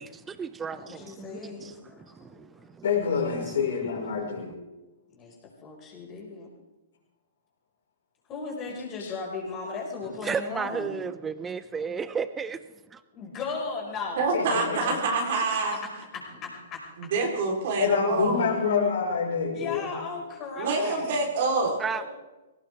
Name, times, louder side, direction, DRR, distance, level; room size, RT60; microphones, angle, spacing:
voice 1, 0.0-3.1 4.1-4.5 10.2-12.6 12.9-13.0 21.8-22.0, right 6 dB, 15° right, 14 dB, 0.8 m, -34 dB
voice 2, 0.7-2.6 5.1-5.3 5.6-6.5 8.3-10.9 13.1-14.4 15.2-15.5 16.1-16.8 19.5-21.2 21.9-22.0, left 4 dB, 25° left, -3 dB, 5.5 m, -37 dB
voice 3, 2.8-4.5 9.0-9.1 14.3-14.8 17.7-19.9, left 6 dB, 60° left, -1 dB, 5.1 m, -27 dB
voice 4, 14.2-15.8 17.0-18.5 20.6-21.8, right 3 dB, 50° right, 0 dB, 3.8 m, -26 dB
21.0 x 18.0 x 3.6 m, 1.1 s
figure-of-eight pair, 120°, 0 cm